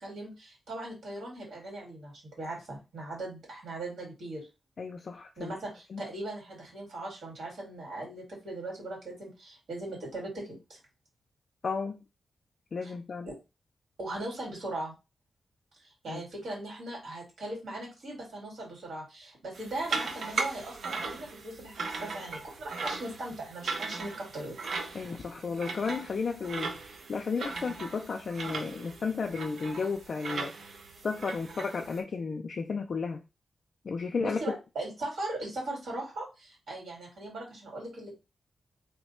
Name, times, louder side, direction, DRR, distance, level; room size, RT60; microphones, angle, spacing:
voice 1, 0.0-2.1 2.4-4.5 5.4-10.8 12.8-12.9 13.2-13.4 14.0-14.9 16.0-24.6 34.2-38.1, right 2 dB, 80° right, 2.1 m, -39 dB
voice 2, 4.8-5.6 5.9-6.0 11.6-12.0 12.7-13.3 16.1-16.2 24.9-30.5 31.0-33.2 33.8-34.6, left 5 dB, 50° left, 0.3 m, -33 dB
sound 1, 19.5-32.0, right 4 dB, 65° right, 0.6 m, -38 dB
3.1 x 2.2 x 4.2 m
wide cardioid pair, 155°, 0 cm